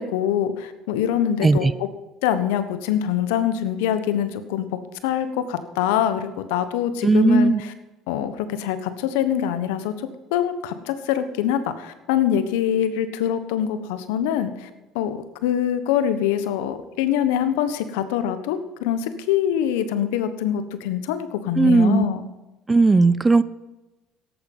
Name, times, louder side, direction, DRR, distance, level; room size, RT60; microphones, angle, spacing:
voice 1, 0.0-1.9 2.2-4.7 5.0-7.7 8.1-14.7 14.9-22.3, left 10 dB, 80° left, 11 dB, 1.2 m, -24 dB
voice 2, 7.0-7.6 21.6-22.0 22.7-23.4, right 3 dB, 20° right, 17 dB, 0.6 m, -16 dB
14.0 x 11.0 x 5.5 m, 1.1 s
hypercardioid pair, 70°, 0 cm